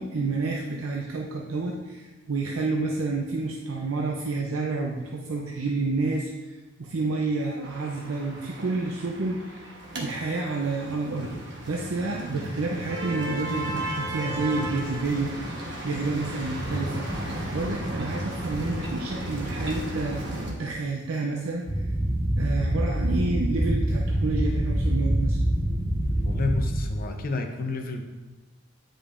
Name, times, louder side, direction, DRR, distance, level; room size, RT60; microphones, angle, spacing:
voice 1, 0.0-9.7 9.9-11.4 11.7-15.3 15.8-17.1 17.5-21.8 22.4-25.4, right 3 dB, 75° right, 0 dB, 0.6 m, -29 dB
sound 1, 7.6-20.5, right 1 dB, 55° right, 1.1 m, -34 dB
sound 2, 21.7-26.9, right 1 dB, 10° right, 0.5 m, -25 dB
voice 2, 26.2-28.0, left 3 dB, 40° left, 4 dB, 0.6 m, -30 dB
8.3 x 5.1 x 2.5 m, 1.1 s
head